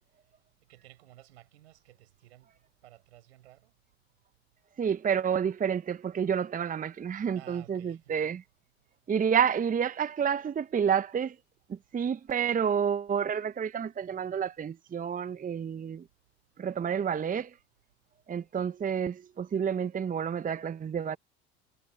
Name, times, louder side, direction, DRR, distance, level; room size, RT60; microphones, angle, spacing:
voice 1, 0.1-3.7 7.3-8.3, right 15 dB, 75° right, 5.4 m, -55 dB
voice 2, 4.8-8.4 9.1-11.4 11.7-16.0 16.6-17.6 18.3-21.2, right 7 dB, 25° right, 0.9 m, -29 dB
figure-of-eight pair, 65°, 32 cm